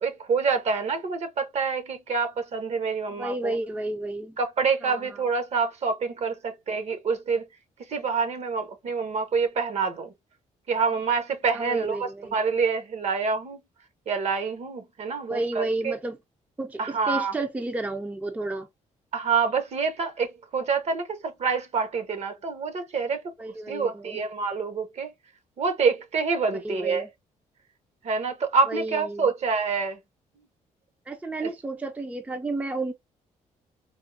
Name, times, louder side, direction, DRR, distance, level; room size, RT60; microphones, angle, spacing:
voice 1, 0.0-3.6 4.4-7.4 7.9-10.1 10.7-13.6 14.1-16.0 16.8-17.3 19.1-23.2 23.7-25.1 25.6-27.0 28.0-30.0 31.4-31.5, right 5 dB, 55° right, 0.9 m, -27 dB
voice 2, 3.1-4.4 4.8-5.2 11.5-12.4 15.3-16.2 16.6-18.7 23.4-24.2 26.6-27.1 28.7-29.2 31.1-32.9, right 2 dB, 10° right, 0.4 m, -31 dB
3.5 x 2.1 x 2.4 m
cardioid pair, 115°, 14 cm